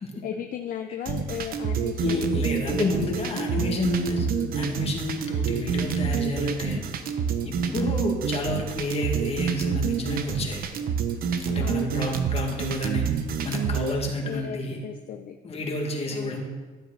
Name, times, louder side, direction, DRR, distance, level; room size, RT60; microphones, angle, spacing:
voice 1, 0.2-2.9 3.2-3.4 7.8-8.1 11.6-12.1 14.2-15.4 16.1-16.4, left 9 dB, 55° left, 6 dB, 0.6 m, -36 dB
sound 1, 1.0-13.9, right 7 dB, 60° right, 0.9 m, -27 dB
voice 2, 2.0-6.8 7.5-10.6 11.5-14.8 15.4-16.4, left 2 dB, 35° left, 0 dB, 2.0 m, -30 dB
12.5 x 7.6 x 4.0 m, 1.3 s
cardioid pair, 110°, 17 cm